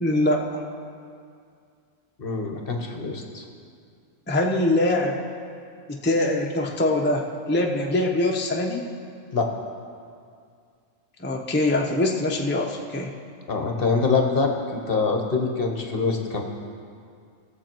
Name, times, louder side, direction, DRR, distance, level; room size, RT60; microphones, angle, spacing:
voice 1, 0.0-0.4 4.3-5.2 5.9-8.8 11.2-13.1, left 1 dB, 10° left, 0 dB, 0.7 m, -23 dB
voice 2, 2.2-3.4 9.3-9.5 13.5-16.4, left 4 dB, 45° left, 3 dB, 1.1 m, -24 dB
19.0 x 7.1 x 4.5 m, 2.3 s
omnidirectional pair, 1.5 m